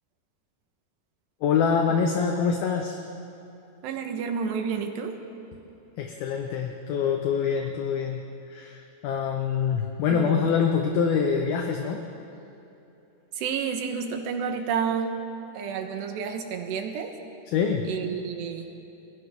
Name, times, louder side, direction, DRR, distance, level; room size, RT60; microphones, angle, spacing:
voice 1, 1.4-3.0 6.0-8.2 8.5-12.0 17.5-17.9, left 6 dB, 70° left, 2 dB, 2.7 m, -25 dB
voice 2, 3.8-5.2 10.1-10.6 13.4-15.2 15.5-17.2 17.9-18.7, right 6 dB, 75° right, 5 dB, 3.5 m, -30 dB
30.0 x 22.5 x 3.8 m, 3.0 s
omnidirectional pair, 5.1 m